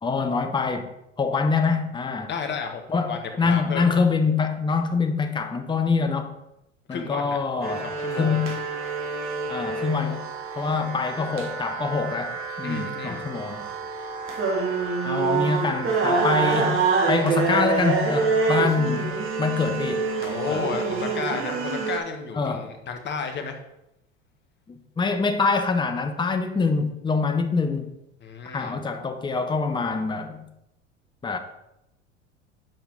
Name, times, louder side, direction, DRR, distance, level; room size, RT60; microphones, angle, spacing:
voice 1, 0.0-0.9 1.2-2.3 2.9-6.3 6.9-7.9 8.2-8.5 9.5-10.2 10.5-13.6 15.0-20.1 20.5-20.7 22.3-22.7 24.7-27.9 28.5-30.4 31.2-31.4, left 4 dB, 15° left, 0.9 m, -25 dB
voice 2, 2.3-2.8 3.1-3.9 6.9-7.4 7.8-8.4 12.6-13.2 20.2-23.6 28.2-28.8, left 5 dB, 30° left, 1.3 m, -32 dB
sound 1, 7.6-22.0, right 4 dB, 35° right, 1.6 m, -26 dB
7.6 x 5.0 x 5.3 m
figure-of-eight pair, 80°, 36 cm